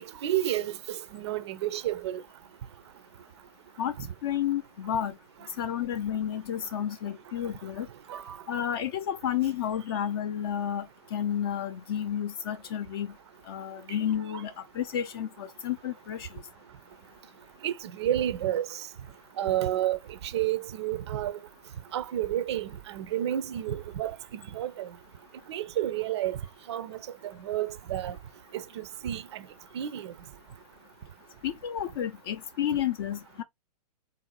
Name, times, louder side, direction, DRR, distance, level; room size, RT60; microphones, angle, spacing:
voice 1, 0.2-2.2 8.1-8.4 17.6-18.9 19.4-21.4 21.9-24.9 25.5-26.4 26.7-27.0 27.4-28.2 28.5-29.5 29.7-30.1, right 12 dB, 40° right, 0.5 m, -31 dB
voice 2, 4.2-5.2 5.6-7.9 8.5-13.1 13.5-16.4 31.4-33.4, left 10 dB, 35° left, 0.4 m, -31 dB
3.7 x 2.6 x 2.8 m
figure-of-eight pair, 115°, 21 cm